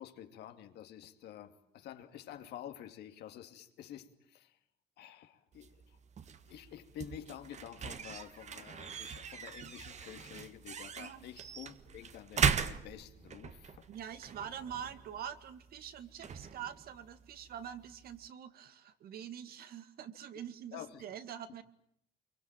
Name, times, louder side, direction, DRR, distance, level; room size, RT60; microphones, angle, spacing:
voice 1, 0.0-4.6 5.0-5.8 6.5-13.9 20.7-21.1, left 10 dB, 75° left, 2.6 m, -49 dB
sound 1, 5.5-18.3, right 7 dB, 45° right, 1.6 m, -39 dB
voice 2, 13.9-21.6, right 9 dB, 65° right, 2.1 m, -45 dB
26.0 x 23.5 x 9.1 m
cardioid pair, 110°, 17 cm